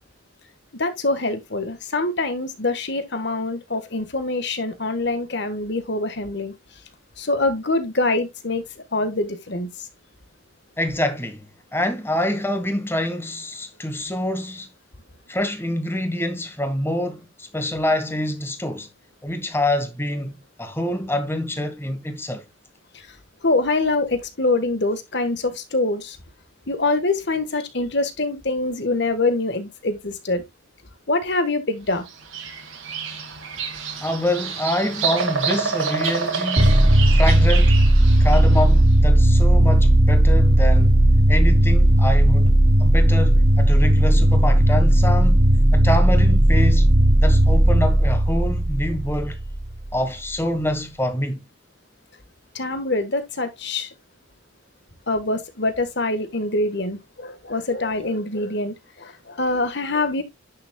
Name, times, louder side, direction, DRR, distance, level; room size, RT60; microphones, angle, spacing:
voice 1, 0.8-6.5 7.2-8.6 8.9-9.7 23.4-26.2 26.7-30.4 31.1-32.0 52.6-53.9 55.1-58.7 59.0-60.2, left 2 dB, 55° left, 1.6 m, -24 dB
voice 2, 10.8-11.5 11.7-14.7 15.3-18.9 19.2-22.4 34.0-37.8 38.2-41.0 41.3-42.5 42.8-45.4 45.7-46.9 47.2-49.4 49.9-51.4, left 1 dB, 10° left, 1.4 m, -26 dB
Bird vocalization bird call bird song, 32.1-38.7, right 6 dB, 80° right, 2.3 m, -28 dB
sound 1, 36.6-50.0, right 1 dB, 40° right, 1.1 m, -15 dB
10.5 x 6.5 x 2.3 m
head